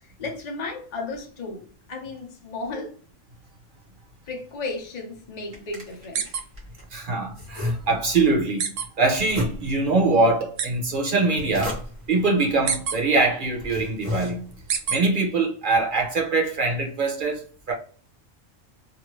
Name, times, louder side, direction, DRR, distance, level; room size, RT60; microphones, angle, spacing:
voice 1, 0.0-2.9 4.3-6.3, left 3 dB, 40° left, 0.8 m, -34 dB
sound 1, 5.1-6.9 7.3-8.3 9.1-10.0 11.1-12.2 12.9-13.0 13.5-14.8, left 2 dB, 25° right, 1.1 m, -33 dB
sound 2, 6.1-6.4 6.8-6.9 8.6-8.9 10.6-10.7 12.7-13.0 14.7-15.0, right 7 dB, 75° right, 0.9 m, -25 dB
voice 2, 6.9-8.7 9.0-11.8 12.1-14.4 14.9-17.7, right 3 dB, 45° right, 0.8 m, -23 dB
2.6 x 2.6 x 3.0 m
omnidirectional pair, 1.3 m